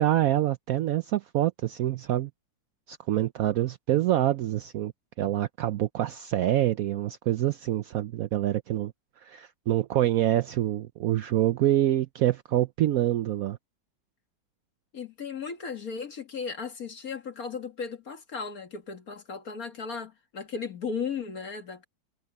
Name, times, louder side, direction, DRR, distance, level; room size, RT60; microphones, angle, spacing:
voice 1, 0.0-2.3 2.9-4.9 5.2-8.9 9.2-13.6, right 13 dB, 75° right, 0.8 m, -26 dB
voice 2, 14.9-21.9, left 5 dB, 50° left, 2.1 m, -36 dB
omnidirectional pair, 2.1 m